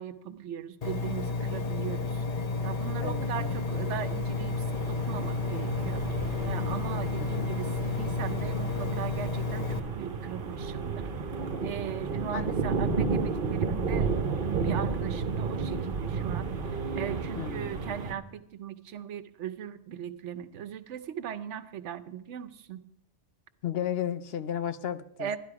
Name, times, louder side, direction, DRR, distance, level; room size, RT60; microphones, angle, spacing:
voice 1, 0.0-2.2 2.6-6.0 6.4-11.0 11.6-16.5 17.0-22.8 25.2-25.4, right 9 dB, 85° right, 13 dB, 1.0 m, -39 dB
Engine, 0.8-9.8, left 3 dB, 40° left, 0.8 m, -31 dB
sound 1, 2.3-18.1, right 4 dB, 50° right, 1.0 m, -33 dB
voice 2, 3.0-3.5 7.2-7.5 12.3-12.5 12.9-13.1 17.4-17.8 23.6-25.4, left 9 dB, 65° left, 12 dB, 0.8 m, -34 dB
12.5 x 11.5 x 4.8 m, 0.72 s
omnidirectional pair, 1.2 m